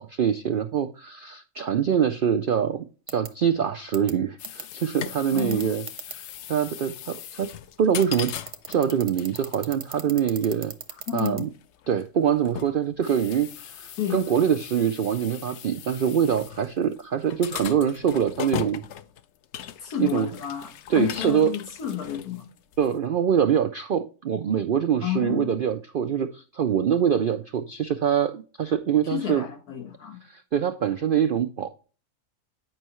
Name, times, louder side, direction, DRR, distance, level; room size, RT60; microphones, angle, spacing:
voice 1, 0.0-5.8 6.1-6.2 6.5-7.5 7.8-8.3 8.7-10.7 11.1-11.5 11.9-18.8 20.0-20.3 20.9-21.5 22.8-29.4 30.3-31.7, right 8 dB, 80° right, 0.4 m, -24 dB
sound 1, 3.1-3.3 3.9-4.1 4.4-4.6 5.4-6.1 8.0-11.4, right 6 dB, 40° right, 0.7 m, -36 dB
sound 2, 4.4-23.0, left 10 dB, 65° left, 0.7 m, -39 dB
voice 2, 5.3-5.7 11.1-11.5 14.0-14.2 19.8-22.5 25.0-25.6 29.1-30.2, left 10 dB, 85° left, 1.8 m, -31 dB
9.1 x 5.4 x 3.0 m
omnidirectional pair, 1.6 m